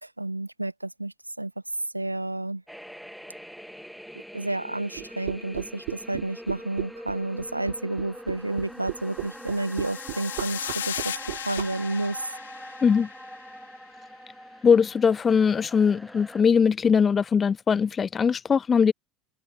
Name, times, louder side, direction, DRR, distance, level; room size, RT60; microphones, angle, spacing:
voice 1, 0.0-1.5 1.9-2.6 4.3-12.3, right 2 dB, 90° right, 1.5 m, -31 dB
sound 1, 2.7-16.4, equal, ahead, 2.4 m, -43 dB
sound 2, 5.0-11.7, right 22 dB, 60° right, 0.6 m, -34 dB
sound 3, 9.1-13.6, left 10 dB, 75° left, 2.6 m, -37 dB
voice 2, 14.6-18.9, left 6 dB, 25° left, 0.3 m, -21 dB
figure-of-eight pair, 70°, 0 cm